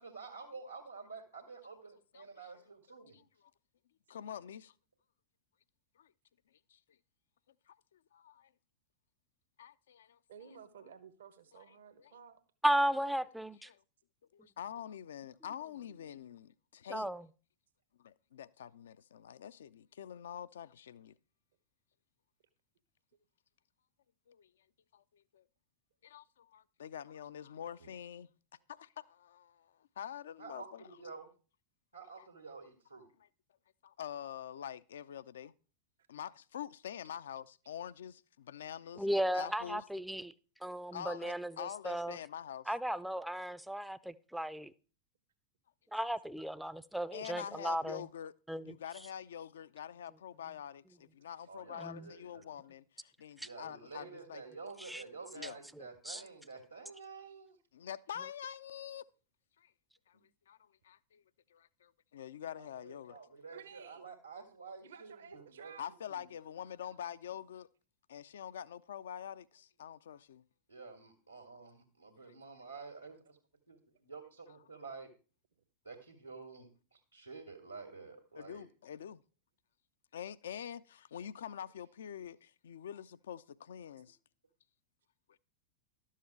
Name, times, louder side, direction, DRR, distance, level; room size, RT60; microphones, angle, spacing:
voice 1, 0.0-3.2 27.8-27.9 30.4-31.3 31.9-33.1 51.5-52.4 53.4-57.6 60.1-60.2 62.6-65.7 66.1-66.3 70.7-73.4 73.7-75.1 75.8-78.7, right 4 dB, 90° right, 1.9 m, -50 dB
voice 2, 3.1-3.5 4.1-4.7 6.0-6.1 6.7-6.8 7.7-8.5 9.6-10.2 11.5-11.6 12.0-12.2 13.7-13.8 14.3-17.1 18.0-21.1 24.3-24.5 24.9-25.4 26.0-28.3 28.7-30.8 32.2-32.3 33.8-35.5 36.1-39.1 39.3-39.8 40.9-42.7 47.1-48.3 48.6-54.4 55.4-55.6 57.7-59.1 59.6-59.7 60.1-60.2 60.5-61.2 61.5-63.2 65.8-67.7 68.1-70.4 78.4-79.2 80.1-84.2 85.3-85.4, left 9 dB, 65° left, 0.4 m, -46 dB
voice 3, 10.3-12.4 42.2-42.3 63.5-64.1 64.8-65.9 66.9-67.0, right 7 dB, 65° right, 1.0 m, -54 dB
voice 4, 12.6-13.7 16.9-17.3 39.0-40.3 40.6-42.2 42.7-44.7 45.9-48.0 48.5-48.8 51.8-52.1 53.4-53.5 54.8-55.0 56.0-56.2, right 1 dB, ahead, 0.5 m, -35 dB
12.0 x 7.4 x 4.5 m
figure-of-eight pair, 90°, 0 cm